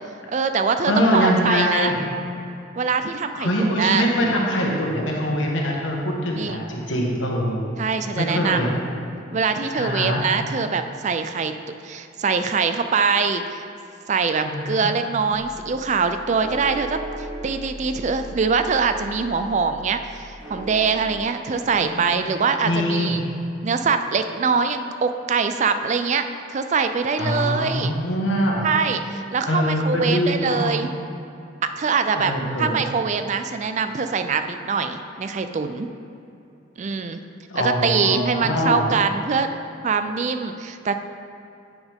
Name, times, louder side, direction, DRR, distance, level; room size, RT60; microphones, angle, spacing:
voice 1, 0.3-1.9 2.8-4.0 6.3-6.6 7.8-8.6 9.3-11.5 11.8-13.6 14.1-23.2 23.6-27.9 28.6-30.9 31.6-32.3 32.6-35.9 36.8-37.2 37.5-39.5 39.8-40.9, right 5 dB, 35° right, 8 dB, 0.3 m, -23 dB
voice 2, 0.9-2.0 3.4-7.6 8.2-8.7 9.8-10.2 14.4-14.9 21.8-22.2 22.6-23.2 27.2-28.6 29.5-30.7 32.2-32.7 37.5-38.9, equal, 80° left, -2 dB, 1.4 m, -23 dB
sound 1, 15.3-21.2, right 1 dB, 10° right, 2.0 m, -37 dB
9.0 x 7.1 x 3.6 m, 2.7 s
head